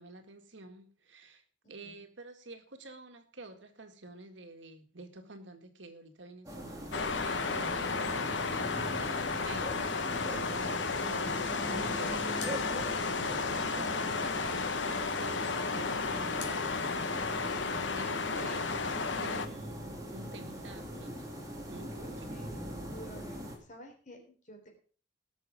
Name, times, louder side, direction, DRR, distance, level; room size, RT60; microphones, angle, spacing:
voice 1, 0.0-9.7 10.1-21.3 21.6-22.3, right 2 dB, 80° right, 6 dB, 1.9 m, -50 dB
voice 2, 1.6-2.0 22.0-22.5 22.9-24.7, right 1 dB, 40° left, 3 dB, 3.6 m, -51 dB
sound 1, 6.5-23.6, equal, 20° right, 2.8 m, -42 dB
sound 2, 6.9-19.5, left 4 dB, 80° left, 1.1 m, -33 dB
sound 3, 12.4-14.1 16.4-17.5, left 6 dB, 60° left, 3.0 m, -48 dB
19.0 x 6.5 x 5.0 m, 0.42 s
head